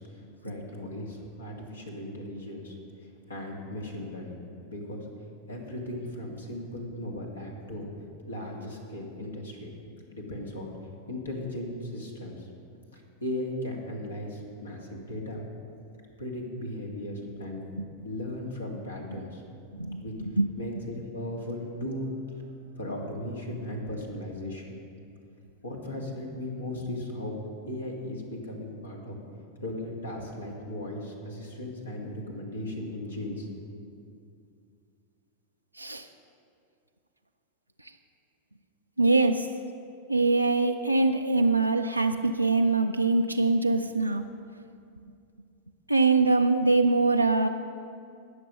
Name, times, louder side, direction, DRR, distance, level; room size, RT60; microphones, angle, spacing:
voice 1, 0.0-5.1 5.5-7.9 8.3-9.7 10.1-10.7 11.1-12.5 12.9-15.4 16.2-17.6 18.0-19.4 19.8-20.1 20.6-22.4 22.7-24.8 25.6-27.4 27.7-29.2 29.6-33.7, left 1 dB, 75° left, 0 dB, 2.1 m, -37 dB
voice 2, 39.0-39.5 40.1-44.2 45.9-47.5, right 3 dB, 90° right, 4 dB, 0.4 m, -23 dB
19.0 x 6.8 x 5.5 m, 2.4 s
figure-of-eight pair, 90°, 0 cm